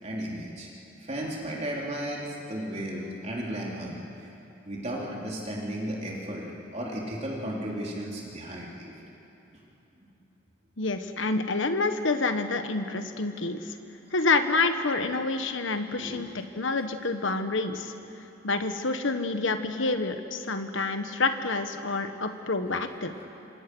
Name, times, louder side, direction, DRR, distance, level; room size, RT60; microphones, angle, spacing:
voice 1, 0.0-0.7 1.0-4.3 4.6-6.5 6.7-8.9 15.9-16.2 23.1-23.3, right 1 dB, 35° right, -3 dB, 3.6 m, -34 dB
voice 2, 10.8-13.6 14.1-17.9 18.4-23.1, left 3 dB, 75° left, 8 dB, 1.4 m, -28 dB
27.0 x 26.5 x 6.3 m, 2.9 s
head